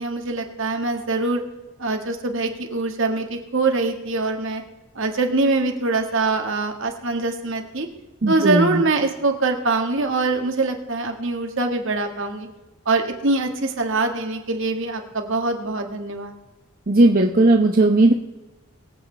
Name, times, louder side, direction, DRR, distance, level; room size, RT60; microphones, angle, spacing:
voice 1, 0.0-1.4 1.8-4.6 4.9-7.9 8.3-12.5 12.8-16.3, right 3 dB, 60° right, 4 dB, 1.8 m, -23 dB
voice 2, 8.2-8.8 16.9-18.1, right 2 dB, 40° right, 2 dB, 0.8 m, -16 dB
24.0 x 8.6 x 3.4 m, 1.1 s
head